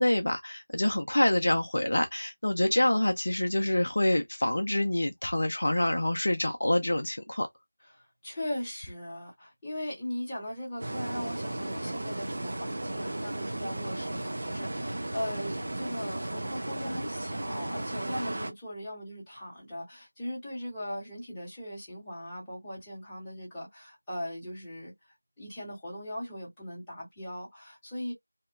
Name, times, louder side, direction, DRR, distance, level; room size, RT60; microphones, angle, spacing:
voice 1, 0.0-7.5, left 1 dB, 45° left, 0.5 m, -26 dB
voice 2, 7.9-24.9 25.4-28.1, left 1 dB, 5° left, 1.0 m, -39 dB
sound 1, 10.8-18.5, right 1 dB, 35° right, 0.5 m, -35 dB
2.8 x 2.2 x 3.4 m
figure-of-eight pair, 170°, 0 cm